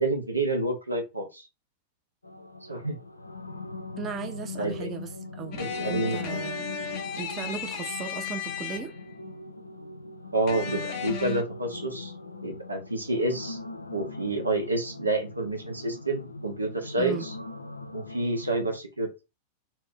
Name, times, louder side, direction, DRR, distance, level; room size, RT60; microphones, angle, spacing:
voice 1, 0.0-1.5 2.7-3.0 4.6-4.9 5.6-6.4 10.3-12.1 12.4-13.6 13.9-17.3 17.9-19.1, right 2 dB, 80° right, 0.6 m, -29 dB
sound 1, 2.2-18.8, left 2 dB, 80° left, 0.3 m, -40 dB
voice 2, 4.0-6.7 7.2-8.9 17.0-17.3, right 7 dB, 30° right, 0.4 m, -37 dB
sound 2, 5.5-9.2 10.5-11.4, left 7 dB, 40° left, 0.7 m, -35 dB
2.5 x 2.0 x 3.6 m
figure-of-eight pair, 90°, 0 cm